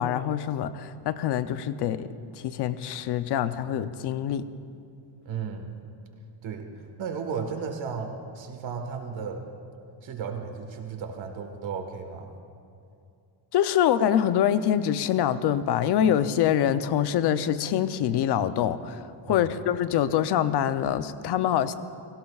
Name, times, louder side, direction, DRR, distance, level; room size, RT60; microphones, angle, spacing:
voice 1, 0.0-2.1 2.4-4.4 13.5-21.7, left 10 dB, 55° left, 12 dB, 0.6 m, -25 dB
voice 2, 5.2-5.8 6.4-6.7 7.0-9.5 10.0-12.3 19.3-19.5, right 6 dB, 65° right, 4 dB, 1.6 m, -34 dB
30.0 x 17.5 x 2.4 m, 2.5 s
cardioid pair, 180°, 49 cm